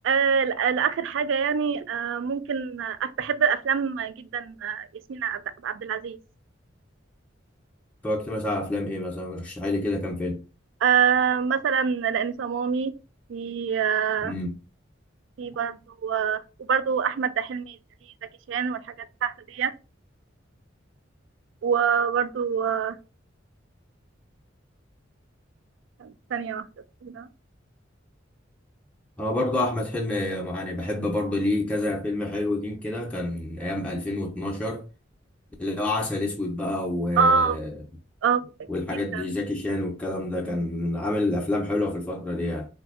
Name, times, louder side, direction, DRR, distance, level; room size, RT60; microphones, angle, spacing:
voice 1, 0.0-6.2 10.8-12.9 13.3-14.3 15.4-17.8 18.5-18.8 19.2-19.7 21.6-23.0 26.0-26.6 27.0-27.3 37.2-37.6 38.2-38.5 39.1-39.2, right 6 dB, 70° right, 0.3 m, -25 dB
voice 2, 8.0-10.4 14.2-14.5 29.2-34.9 35.6-37.7 38.7-42.7, left 1 dB, 5° left, 0.4 m, -28 dB
3.8 x 2.6 x 2.4 m
head